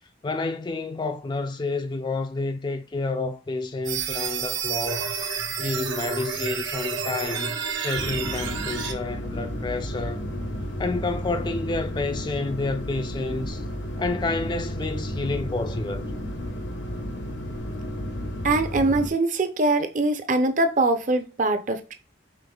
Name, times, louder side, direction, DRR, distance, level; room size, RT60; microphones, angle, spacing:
voice 1, 0.2-5.2 5.6-10.3 10.8-13.6 14.0-16.1, left 3 dB, 25° left, 0.3 m, -29 dB
sound 1, 3.8-8.9, right 6 dB, 85° right, 1.2 m, -30 dB
sound 2, 8.0-19.1, equal, 75° left, 0.8 m, -32 dB
voice 2, 18.4-21.9, right 2 dB, 45° right, 0.6 m, -23 dB
5.1 x 3.5 x 2.3 m
head